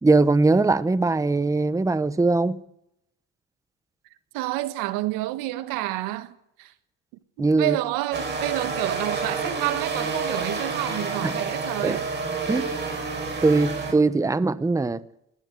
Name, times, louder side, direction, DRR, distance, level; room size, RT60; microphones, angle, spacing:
voice 1, 0.0-2.6 7.4-7.8 11.2-11.3 11.8-12.0 12.5-12.8 13.4-15.0, right 3 dB, 10° right, 0.9 m, -21 dB
voice 2, 4.3-6.7 7.4-12.1, right 16 dB, 80° right, 1.5 m, -29 dB
sound 1, 8.1-13.9, right 4 dB, 30° right, 6.1 m, -29 dB
20.0 x 16.0 x 8.1 m
supercardioid pair, 85°, 33 cm